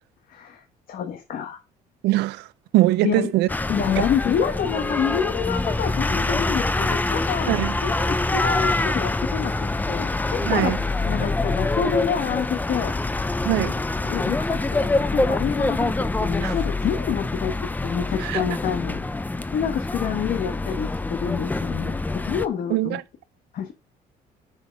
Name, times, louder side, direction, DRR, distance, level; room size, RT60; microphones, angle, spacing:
voice 1, 0.3-1.6 3.0-3.3 3.7-10.7 11.0-12.9 14.0-17.6 17.8-19.0 19.5-23.0 23.5-23.7, left 8 dB, 60° left, 1.3 m, -27 dB
voice 2, 2.0-2.5 2.7-3.5 4.0-4.1 7.5-7.7 10.4-10.8 13.4-13.7 16.4-16.5 18.2-18.4 22.7-23.0, right 17 dB, 90° right, 0.6 m, -22 dB
sound 1, 3.5-22.5, left 2 dB, 10° left, 0.5 m, -25 dB
6.3 x 5.7 x 5.3 m
cardioid pair, 110°, 17 cm